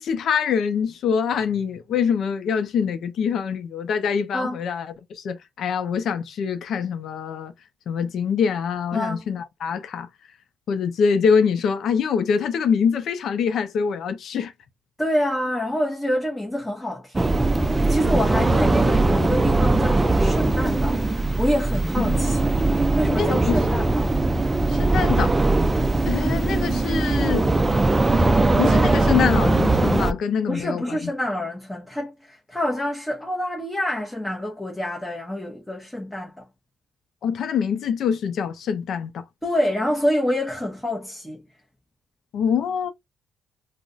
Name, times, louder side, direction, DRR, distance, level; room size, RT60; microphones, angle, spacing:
voice 1, 0.0-7.5 7.9-10.1 10.7-14.5 22.0-22.2 23.1-23.6 24.7-25.3 26.0-27.6 28.6-31.1 37.2-39.2 42.3-42.9, left 6 dB, 70° left, 0.5 m, -24 dB
voice 2, 8.9-9.3 15.0-17.4 17.7-24.2 30.5-36.5 39.4-41.4, left 1 dB, 10° left, 0.7 m, -27 dB
sound 1, 17.1-30.1, right 2 dB, 20° right, 0.4 m, -20 dB
2.3 x 2.1 x 3.9 m
cardioid pair, 90°, 0 cm